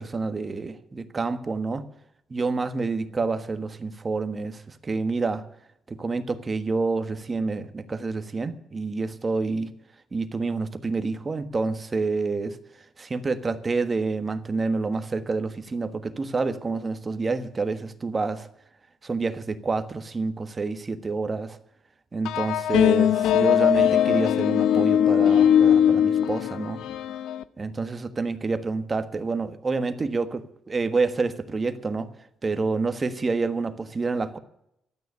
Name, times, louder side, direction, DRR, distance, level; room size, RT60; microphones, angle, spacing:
voice 1, 0.0-1.9 2.3-5.5 5.9-9.7 10.1-12.6 13.0-18.5 19.0-21.6 22.1-26.8 27.6-30.4 30.7-32.1 32.4-34.4, right 4 dB, 30° right, 10 dB, 1.3 m, -28 dB
sound 1, 22.3-27.4, left 10 dB, 85° left, 0.6 m, -20 dB
12.5 x 9.2 x 9.5 m, 0.77 s
cardioid pair, 90°, 0 cm